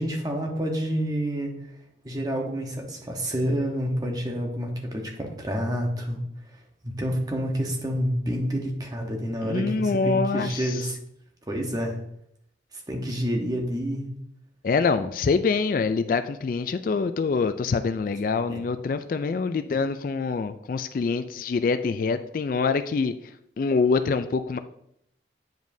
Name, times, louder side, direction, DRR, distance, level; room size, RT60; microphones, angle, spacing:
voice 1, 0.0-1.5 2.0-6.2 6.8-11.0 11.5-12.0 12.9-14.0 18.5-18.6, equal, 20° right, 1 dB, 1.1 m, -28 dB
voice 2, 9.4-10.8 14.6-23.1 23.6-24.6, left 4 dB, 50° left, 11 dB, 0.3 m, -25 dB
9.1 x 5.1 x 2.7 m, 0.74 s
head